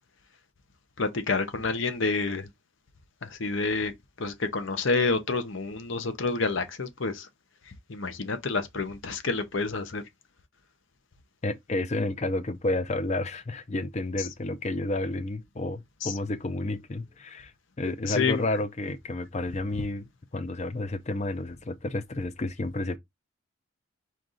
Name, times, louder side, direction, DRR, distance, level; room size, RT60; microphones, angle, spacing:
voice 1, 1.0-2.5 3.2-3.9 4.2-7.3 7.9-10.0 16.0-16.1 18.0-18.4, left 4 dB, 65° left, 0.8 m, -28 dB
voice 2, 11.4-17.5 17.8-23.0, left 2 dB, 30° left, 0.5 m, -31 dB
4.6 x 2.6 x 3.7 m
head